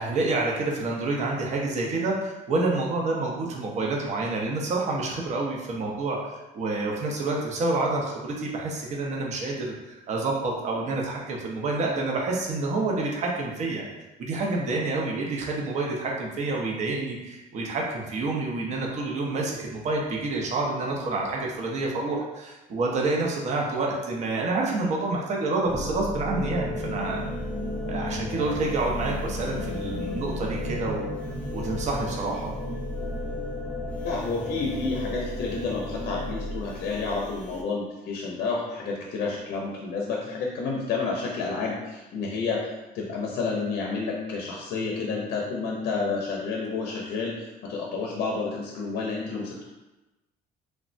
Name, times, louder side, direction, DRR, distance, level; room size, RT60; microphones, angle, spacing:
voice 1, 0.0-6.2 6.5-13.8 14.2-27.2 27.8-31.1 31.5-32.5, right 2 dB, 45° right, -1 dB, 0.5 m, -28 dB
sound 1, 25.7-37.6, left 1 dB, 5° left, 0.3 m, -34 dB
sound 2, 26.5-32.9, left 1 dB, 80° right, 1.1 m, -38 dB
voice 2, 34.0-49.6, left 4 dB, 70° left, -1 dB, 0.5 m, -30 dB
3.2 x 2.0 x 2.5 m, 1.1 s
cardioid pair, 110°, 17 cm